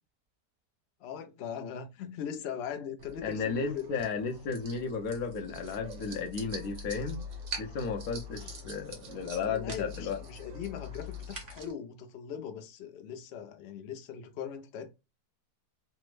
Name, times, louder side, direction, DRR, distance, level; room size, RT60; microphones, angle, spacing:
voice 1, 1.0-4.1 8.3-8.5 9.4-14.9, left 8 dB, 85° left, 0.5 m, -40 dB
sound 1, 3.0-11.7, left 1 dB, 55° right, 1.2 m, -43 dB
voice 2, 3.2-7.2 7.6-10.2, left 5 dB, 65° left, 1.0 m, -34 dB
3.3 x 2.0 x 3.1 m
omnidirectional pair, 1.8 m